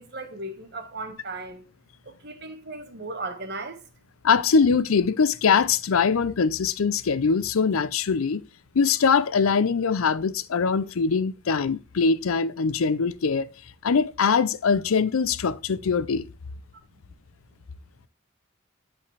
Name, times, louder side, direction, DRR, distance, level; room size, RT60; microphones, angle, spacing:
voice 1, 0.0-1.6 2.0-3.9, right 2 dB, 50° right, 1.2 m, -36 dB
voice 2, 4.2-8.4 8.7-13.5 13.8-16.3, left 5 dB, 90° left, 0.5 m, -22 dB
8.3 x 5.2 x 3.3 m
head